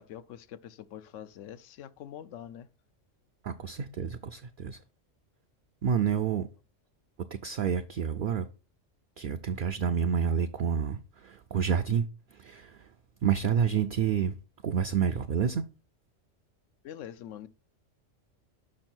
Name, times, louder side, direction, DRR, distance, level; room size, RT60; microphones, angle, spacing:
voice 1, 0.0-2.7 16.8-17.5, left 10 dB, 80° left, 0.9 m, -44 dB
voice 2, 3.4-4.8 5.8-6.5 7.4-8.5 9.2-12.9 13.2-14.4 14.6-15.6, right 7 dB, 60° right, 0.6 m, -29 dB
6.4 x 6.0 x 4.4 m
omnidirectional pair, 1.3 m